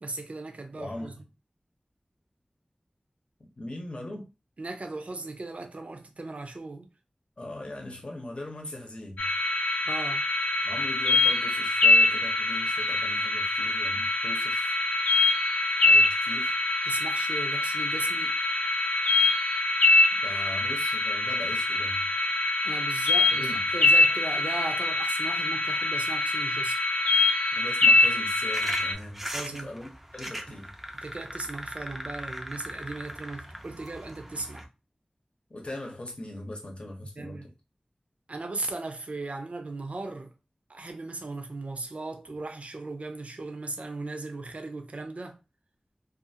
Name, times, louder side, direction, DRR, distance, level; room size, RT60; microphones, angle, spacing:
voice 1, 0.0-1.1 4.6-6.9 9.9-10.3 16.9-18.3 22.6-26.8 29.3-29.7 31.0-34.7 37.2-37.5 38.3-40.3 40.7-45.4, right 2 dB, 65° right, 0.5 m, -37 dB
voice 2, 0.7-1.2 3.6-4.3 7.4-9.3 10.6-14.7 15.8-16.5 20.2-22.1 23.3-23.6 27.6-29.3 29.5-30.7 35.5-37.5, left 1 dB, 50° left, 0.8 m, -40 dB
sound 1, 9.2-28.9, left 2 dB, 90° left, 0.4 m, -24 dB
sound 2, 28.5-34.6, equal, 10° right, 0.4 m, -39 dB
2.5 x 2.4 x 2.7 m
wide cardioid pair, 65°, 2 cm